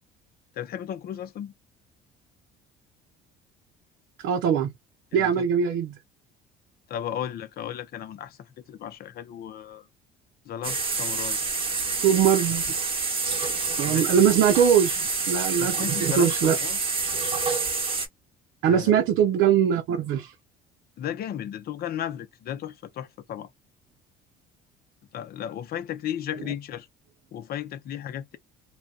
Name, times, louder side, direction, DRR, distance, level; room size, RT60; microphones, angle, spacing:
voice 1, 0.6-1.5 5.1-5.5 6.9-9.9 10.5-11.4 13.9-14.2 15.6-16.8 18.6-19.0 21.0-23.5 25.1-26.9 27.3-28.4, left 10 dB, 45° left, 0.6 m, -35 dB
voice 2, 4.2-4.7 5.1-5.9 12.0-12.8 13.8-16.6 18.6-20.3, right 8 dB, 65° right, 0.6 m, -22 dB
sound 1, 10.6-18.1, right 4 dB, 25° right, 1.1 m, -27 dB
2.2 x 2.2 x 3.7 m
cardioid pair, 110°, 21 cm